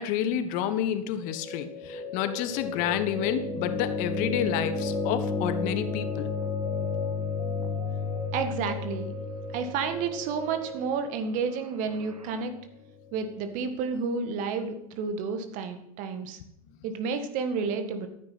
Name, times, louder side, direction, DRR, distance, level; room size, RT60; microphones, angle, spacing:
voice 1, 0.0-6.3, left 9 dB, 45° left, 11 dB, 1.2 m, -29 dB
sound 1, 1.3-13.3, left 4 dB, 10° left, 3.3 m, -33 dB
sound 2, 4.8-12.4, right 4 dB, 75° right, 2.1 m, -44 dB
voice 2, 8.3-9.2 9.5-12.5 13.1-16.4 16.8-18.1, right 5 dB, 45° right, 8 dB, 2.1 m, -31 dB
14.0 x 9.3 x 5.9 m, 0.77 s
figure-of-eight pair, 85°, 19 cm